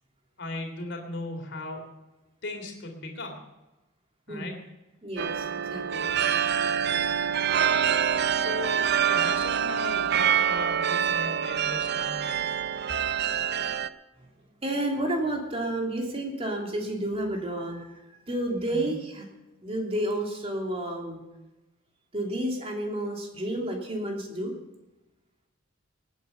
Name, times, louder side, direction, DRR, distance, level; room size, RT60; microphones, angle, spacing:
voice 1, 0.4-1.8 2.4-3.4 4.3-4.5 8.4-12.4 18.7-18.9, left 2 dB, 60° left, 3 dB, 3.2 m, -37 dB
voice 2, 5.0-6.1 14.2-14.3 14.6-19.2 19.6-21.2 22.1-24.5, right 1 dB, 30° right, 1 dB, 2.9 m, -31 dB
sound 1, 5.2-13.9, right 8 dB, 55° right, 0.5 m, -26 dB
18.5 x 9.5 x 5.7 m, 1.0 s
head